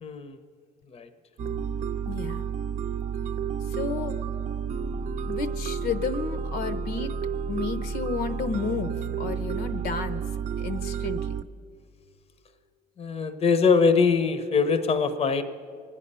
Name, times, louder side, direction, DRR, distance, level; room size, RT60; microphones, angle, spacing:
voice 1, 0.0-0.3 0.9-1.1 13.0-15.4, left 5 dB, 35° left, 10 dB, 0.8 m, -22 dB
sound 1, 1.4-11.4, right 6 dB, 45° right, 0.6 m, -31 dB
voice 2, 2.1-2.4 3.6-4.2 5.3-7.1 7.5-10.2 10.6-11.4, left 5 dB, 65° left, 10 dB, 0.9 m, -32 dB
25.0 x 10.0 x 5.5 m, 2.3 s
cardioid pair, 110°, 17 cm